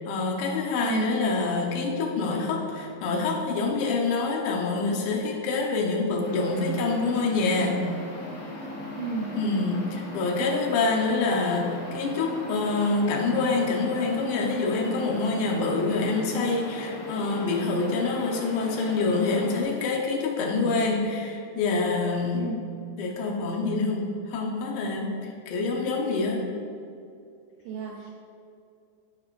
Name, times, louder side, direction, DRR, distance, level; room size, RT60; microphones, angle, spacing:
voice 1, 0.0-7.9 9.3-22.4 23.0-26.5, left 3 dB, 85° left, 0 dB, 3.1 m, -26 dB
sound 1, 6.2-19.6, left 1 dB, 65° left, 1.1 m, -39 dB
voice 2, 9.0-9.4 10.5-10.6 22.3-22.6 25.9-26.0 27.6-28.1, right 4 dB, 85° right, -2 dB, 1.9 m, -32 dB
15.0 x 5.0 x 2.5 m, 2.5 s
omnidirectional pair, 4.9 m